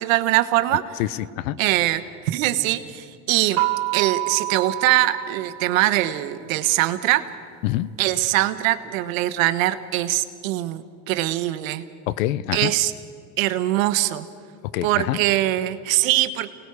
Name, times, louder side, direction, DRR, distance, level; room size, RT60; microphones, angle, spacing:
voice 1, 0.0-0.8 1.6-3.6 3.9-7.3 8.0-11.8 12.5-12.9 13.4-14.2 14.8-16.5, right 15 dB, 85° right, 11 dB, 1.2 m, -22 dB
voice 2, 1.0-1.6 7.6-7.9 12.1-12.7 14.7-15.2, left 15 dB, 90° left, 18 dB, 0.8 m, -25 dB
sound 1, 3.6-6.3, right 20 dB, 60° right, 1.1 m, -28 dB
29.0 x 19.0 x 4.8 m, 2.2 s
supercardioid pair, 105°, 39 cm